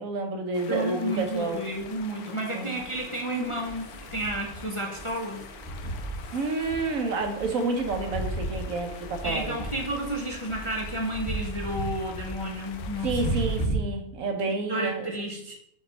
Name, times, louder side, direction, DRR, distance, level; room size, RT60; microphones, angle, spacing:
voice 1, 0.0-1.6 2.5-2.8 6.3-9.5 13.0-15.1, right 3 dB, 65° right, 5 dB, 1.3 m, -29 dB
sound 1, 0.5-13.7, left 7 dB, 85° left, 1.1 m, -47 dB
voice 2, 0.7-5.5 9.2-13.2 14.4-15.5, right 1 dB, 30° left, 0 dB, 0.7 m, -31 dB
sound 2, 1.3-13.7, right 1 dB, 20° right, 1.9 m, -36 dB
5.8 x 3.2 x 5.1 m, 0.70 s
omnidirectional pair, 1.5 m